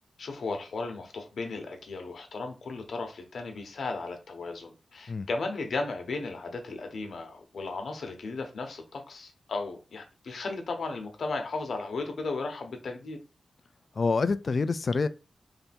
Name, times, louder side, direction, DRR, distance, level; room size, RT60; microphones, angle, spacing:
voice 1, 0.2-13.2, left 3 dB, 70° left, 0.9 m, -35 dB
voice 2, 14.0-15.1, left 4 dB, 50° left, 0.3 m, -26 dB
3.3 x 2.7 x 4.2 m
wide cardioid pair, 115°, 0 cm